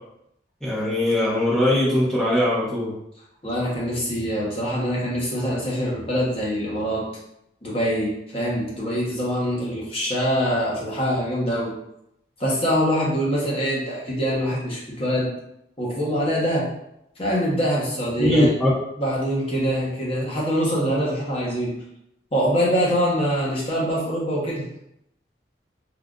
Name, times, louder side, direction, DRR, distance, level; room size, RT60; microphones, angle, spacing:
voice 1, 0.6-2.9 18.2-18.7, left 1 dB, 5° left, -8 dB, 1.0 m, -20 dB
voice 2, 3.4-7.0 7.6-11.7 12.4-15.3 15.8-16.7 17.2-18.5 19.0-21.8 22.3-24.6, equal, 30° left, -5 dB, 0.9 m, -24 dB
3.7 x 2.5 x 2.4 m, 0.79 s
head